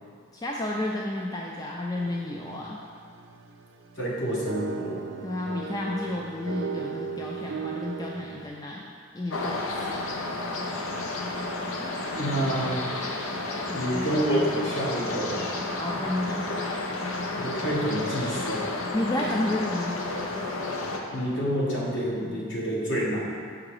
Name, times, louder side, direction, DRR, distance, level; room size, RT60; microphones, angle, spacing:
voice 1, 0.3-2.8 5.2-8.9 9.1-10.0 13.7-14.1 15.8-17.0 18.9-20.0, left 1 dB, 20° left, -2 dB, 0.3 m, -31 dB
sound 1, 2.0-8.5, right 5 dB, 65° right, 0.5 m, -37 dB
voice 2, 4.0-5.0 11.8-12.8 13.7-15.5 17.4-18.6 21.1-23.3, equal, 60° left, -5 dB, 1.4 m, -28 dB
sound 2, 9.3-21.0, left 2 dB, 80° left, 0.7 m, -31 dB
6.1 x 4.8 x 4.8 m, 2.2 s
head